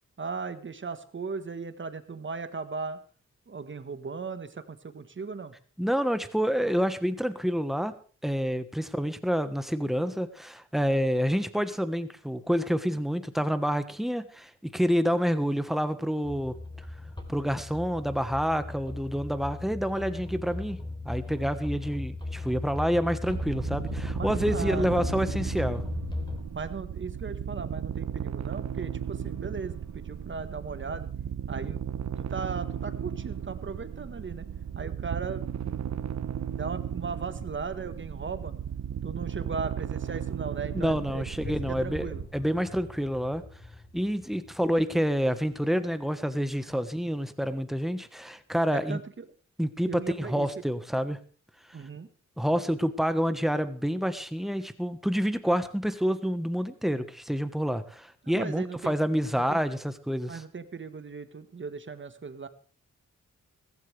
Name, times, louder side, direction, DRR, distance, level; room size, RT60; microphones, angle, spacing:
voice 1, 0.2-3.0 3.5-5.5 24.1-24.9 26.5-31.1 31.5-31.8 32.2-34.5 34.7-35.5 36.5-38.5 39.0-42.2 48.7-49.3 49.9-50.5 51.7-52.1 58.2-59.0 59.3-59.6 60.3-62.5, right 5 dB, 40° right, 11 dB, 1.4 m, -37 dB
voice 2, 5.8-7.9 8.2-16.6 17.3-20.8 21.0-25.8 40.7-43.4 43.9-49.0 49.6-51.2 52.4-60.4, equal, ahead, 10 dB, 1.2 m, -28 dB
sound 1, 16.2-26.4, left 2 dB, 15° left, 3.6 m, -36 dB
sound 2, 23.2-42.3, right 8 dB, 65° right, 1.0 m, -35 dB
sound 3, 41.4-47.0, left 2 dB, 50° left, 4.7 m, -45 dB
15.5 x 15.0 x 3.4 m, 0.41 s
cardioid pair, 80°, 30 cm